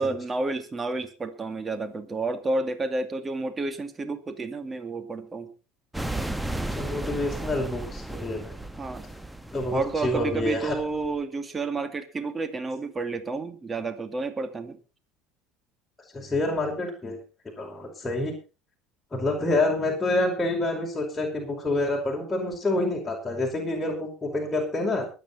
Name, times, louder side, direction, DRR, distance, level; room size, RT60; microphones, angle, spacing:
voice 1, 0.0-5.5 8.8-9.1 9.7-14.8, right 3 dB, 25° right, 9 dB, 2.3 m, -30 dB
sound 1, 5.9-11.2, right 1 dB, 5° right, 1.2 m, -35 dB
voice 2, 6.7-8.6 9.5-10.7 16.1-17.2 17.6-18.3 19.1-25.1, left 2 dB, 15° left, -1 dB, 5.0 m, -27 dB
23.5 x 8.9 x 4.2 m, 0.33 s
hypercardioid pair, 80°, 0 cm